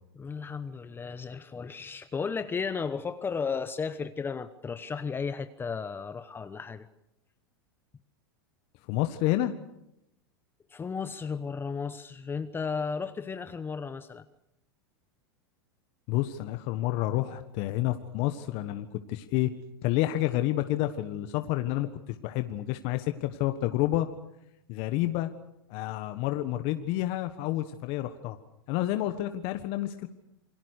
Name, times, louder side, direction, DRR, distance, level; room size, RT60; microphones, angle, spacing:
voice 1, 0.1-6.9 10.7-14.2, left 5 dB, 20° left, 12 dB, 1.0 m, -34 dB
voice 2, 8.9-9.5 16.1-19.5 19.8-24.1 24.7-25.3 25.7-28.4 28.7-30.1, left 15 dB, 50° left, 9 dB, 1.4 m, -29 dB
28.5 x 22.5 x 6.6 m, 0.83 s
hypercardioid pair, 110°, 12 cm